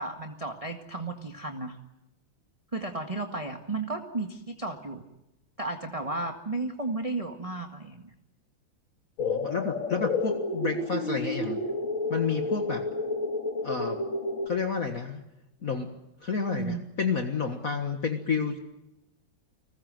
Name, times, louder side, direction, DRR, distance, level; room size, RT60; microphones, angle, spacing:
voice 1, 0.0-1.8 2.7-5.0 5.6-8.1 16.5-16.8, right 2 dB, 20° right, 3 dB, 1.6 m, -34 dB
sound 1, 9.2-14.5, left 2 dB, 75° left, 3.5 m, -30 dB
voice 2, 9.2-11.6 12.1-12.9 13.6-14.0 14.5-15.2 15.6-15.9 16.2-18.6, left 5 dB, 45° left, 5 dB, 1.9 m, -30 dB
30.0 x 21.0 x 7.7 m, 0.91 s
omnidirectional pair, 2.2 m